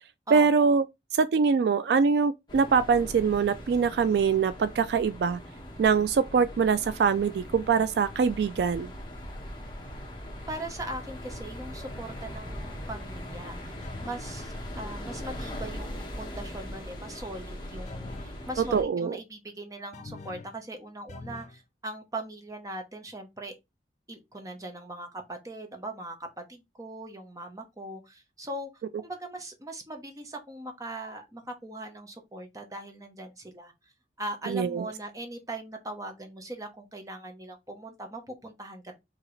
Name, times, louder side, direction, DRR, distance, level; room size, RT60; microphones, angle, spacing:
voice 1, 0.3-0.8 1.1-5.4 5.8-8.9 18.7-19.2 34.5-34.9, right 5 dB, 70° right, 0.3 m, -23 dB
sound 1, 2.5-18.8, equal, 25° left, 1.1 m, -40 dB
voice 2, 10.5-13.7 14.0-23.6 24.1-33.7 34.2-39.0, right 1 dB, 20° right, 0.9 m, -40 dB
sound 2, 13.8-14.3 17.9-18.4 19.9-20.6 21.1-21.6, left 3 dB, 40° left, 0.5 m, -43 dB
4.8 x 2.9 x 3.2 m
head